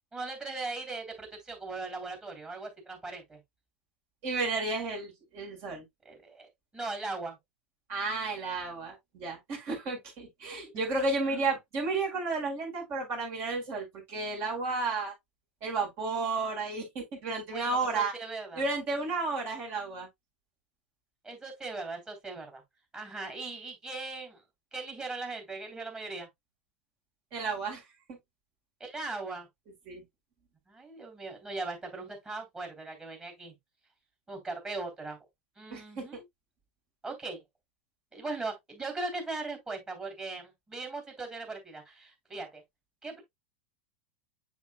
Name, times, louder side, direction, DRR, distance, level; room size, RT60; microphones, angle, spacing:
voice 1, 0.1-3.4 6.0-7.4 10.5-10.6 11.2-11.4 17.5-18.6 21.2-22.6 22.9-24.4 24.7-26.3 28.8-29.5 30.7-33.5 34.3-35.2 35.6-36.2 37.0-37.4 38.1-42.6 43.0-43.2, right 3 dB, 15° right, 3.3 m, -39 dB
voice 2, 4.2-5.8 7.9-15.1 15.6-18.1 18.5-20.1 27.3-27.8 28.1-28.2 29.9-30.0 35.7-36.2, right 3 dB, 45° right, 4.8 m, -32 dB
7.1 x 6.4 x 2.3 m
figure-of-eight pair, 85°, 5 cm